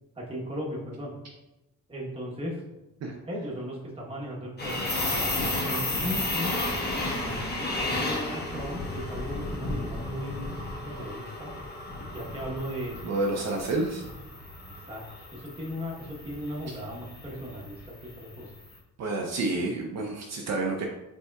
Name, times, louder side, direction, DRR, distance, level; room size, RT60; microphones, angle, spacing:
voice 1, 0.2-1.1 1.9-2.8 3.3-6.6 7.2-10.4 10.8-11.5 12.1-13.1 14.6-15.0 15.3-18.5, equal, 15° right, -3 dB, 1.0 m, -37 dB
sound 1, 4.6-18.6, left 2 dB, 30° left, 1.0 m, -33 dB
voice 2, 13.0-14.0 19.0-20.9, right 2 dB, 55° right, 1 dB, 0.6 m, -29 dB
5.4 x 3.6 x 2.3 m, 0.98 s
cardioid pair, 125°, 32 cm